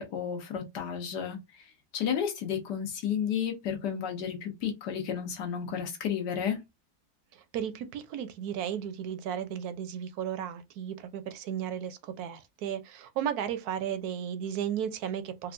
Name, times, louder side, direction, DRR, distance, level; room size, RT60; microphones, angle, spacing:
voice 1, 0.0-1.4 1.9-6.6, left 8 dB, 90° left, 1.5 m, -32 dB
voice 2, 7.3-15.5, right 9 dB, 75° right, 1.0 m, -34 dB
4.2 x 2.3 x 2.5 m
omnidirectional pair, 1.8 m